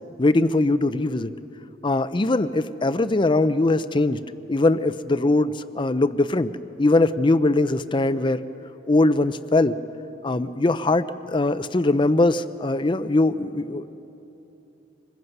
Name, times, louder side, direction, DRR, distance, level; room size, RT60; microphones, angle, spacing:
voice 1, 0.2-1.3 1.8-4.2 4.5-6.5 6.8-8.4 8.9-9.8 10.2-13.9, left 2 dB, 25° left, 13 dB, 0.5 m, -21 dB
25.5 x 20.5 x 5.4 m, 3.0 s
head